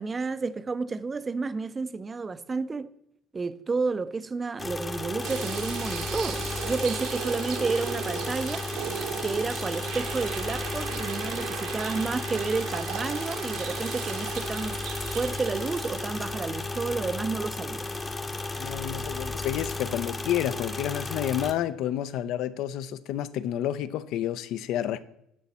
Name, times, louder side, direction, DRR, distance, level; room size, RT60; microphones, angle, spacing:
voice 1, 0.0-2.9 3.3-8.6 9.2-17.9, right 4 dB, 20° right, 0.4 m, -31 dB
sound 1, 4.6-21.5, left 3 dB, 15° left, 0.8 m, -34 dB
sound 2, 5.2-17.4 17.9-18.0 20.3-20.5, right 9 dB, 70° right, 1.0 m, -37 dB
voice 2, 18.6-25.0, left 11 dB, 60° left, 0.5 m, -30 dB
10.5 x 6.1 x 4.2 m
cardioid pair, 135°, 0 cm